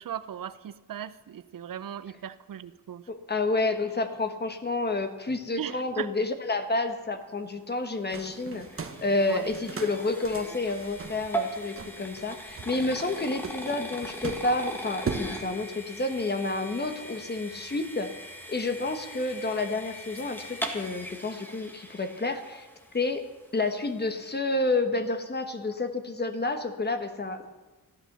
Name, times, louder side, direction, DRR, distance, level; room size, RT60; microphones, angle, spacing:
voice 1, 0.0-3.1 5.5-6.1 9.3-9.5, right 10 dB, 75° right, 15 dB, 0.6 m, -37 dB
voice 2, 3.1-18.1 18.5-22.7 22.9-23.2 23.5-27.5, left 2 dB, 30° left, 7 dB, 1.2 m, -29 dB
sound 1, 7.8-23.0, right 1 dB, 5° left, 1.5 m, -40 dB
sound 2, 8.1-15.3, right 5 dB, 40° right, 1.0 m, -40 dB
14.0 x 11.5 x 6.7 m, 1.2 s
wide cardioid pair, 170°, 34 cm